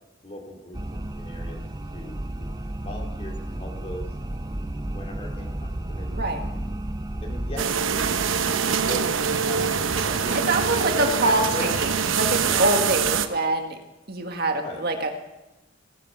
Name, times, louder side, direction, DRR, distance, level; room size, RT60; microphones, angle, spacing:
voice 1, 0.2-1.6 1.9-4.1 4.9-6.2 7.2-8.1 8.9-9.2 9.5-11.7 14.6-14.8, left 1 dB, 30° left, 2 dB, 2.5 m, -38 dB
sound 1, 0.7-7.6, right 1 dB, 20° right, 0.7 m, -32 dB
voice 2, 6.1-6.5 10.3-13.8 14.1-15.1, right 2 dB, 55° right, 5 dB, 1.7 m, -25 dB
sound 2, 7.6-13.3, right 6 dB, 80° right, 0.9 m, -24 dB
19.5 x 11.0 x 5.7 m, 1.0 s
head